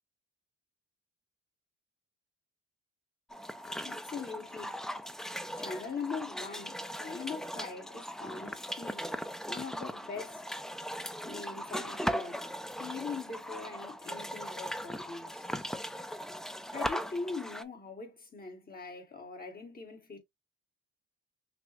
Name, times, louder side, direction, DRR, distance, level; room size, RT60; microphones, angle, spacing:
sound 1, 3.3-17.6, equal, ahead, 0.4 m, -39 dB
voice 1, 3.8-4.9 5.5-9.1 9.5-10.6 11.2-15.5 16.7-20.2, left 4 dB, 30° left, 1.5 m, -42 dB
5.8 x 2.0 x 3.0 m
cardioid pair, 90°, 30 cm